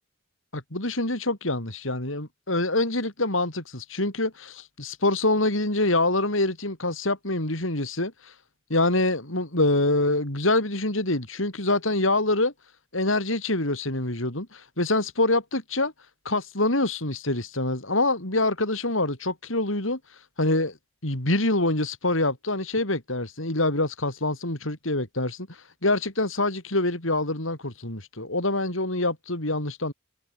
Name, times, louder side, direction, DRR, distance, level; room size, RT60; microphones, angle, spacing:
voice 1, 0.5-8.3 8.7-12.5 12.9-15.9 16.3-20.0 20.4-20.8 21.0-29.9, left 2 dB, 70° left, 5.3 m, -25 dB
head